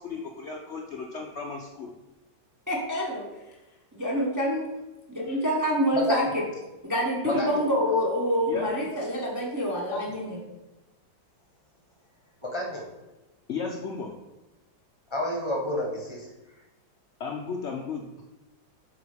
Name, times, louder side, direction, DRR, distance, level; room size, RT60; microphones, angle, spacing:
voice 1, 0.0-1.9 7.2-7.5 8.5-8.7 13.5-14.1 17.2-18.0, left 5 dB, 70° left, 1 dB, 0.6 m, -34 dB
voice 2, 2.7-3.2 4.0-4.7 5.1-6.3 6.8-10.4, equal, 15° right, -3 dB, 0.9 m, -26 dB
voice 3, 7.3-7.6 9.9-10.0 12.4-12.8 15.1-16.3, left 1 dB, 15° left, -1 dB, 1.4 m, -29 dB
8.0 x 3.8 x 5.1 m, 1.1 s
omnidirectional pair, 2.0 m